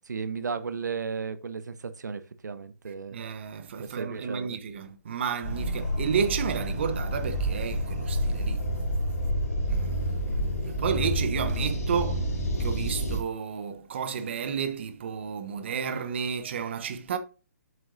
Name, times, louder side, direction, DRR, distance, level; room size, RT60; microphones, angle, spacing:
voice 1, 0.0-3.2 3.8-4.6, right 5 dB, 80° right, 0.8 m, -34 dB
voice 2, 3.1-8.6 9.7-10.1 10.6-12.3 12.6-17.2, right 7 dB, 40° right, 0.9 m, -31 dB
sound 1, 5.4-13.2, equal, 55° left, 2.9 m, -29 dB
7.9 x 7.7 x 2.6 m
hypercardioid pair, 170°, 9 cm